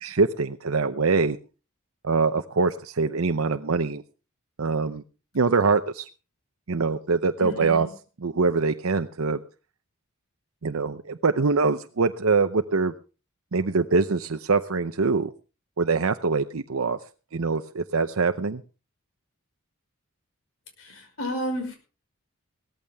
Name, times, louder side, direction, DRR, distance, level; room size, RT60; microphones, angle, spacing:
voice 1, 0.0-1.4 2.0-4.0 4.6-5.0 5.3-6.1 6.7-7.9 8.2-9.4 10.6-12.9 13.5-15.3 15.8-17.0 17.3-18.6, right 4 dB, 75° right, 8 dB, 0.7 m, -24 dB
voice 2, 7.4-7.9 20.8-21.8, equal, 70° left, 5 dB, 5.6 m, -32 dB
17.5 x 14.5 x 3.5 m, 0.34 s
head